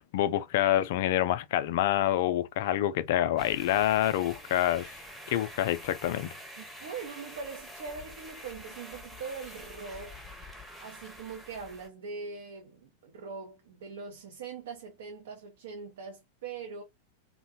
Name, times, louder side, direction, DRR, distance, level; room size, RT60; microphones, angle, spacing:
voice 1, 0.0-5.0 5.3-6.3, left 12 dB, 55° left, 0.3 m, -27 dB
sound 1, 3.4-11.9, equal, ahead, 0.7 m, -46 dB
voice 2, 6.6-10.3 10.8-16.8, right 5 dB, 60° right, 0.6 m, -42 dB
2.7 x 2.1 x 2.8 m
figure-of-eight pair, 90°, 0 cm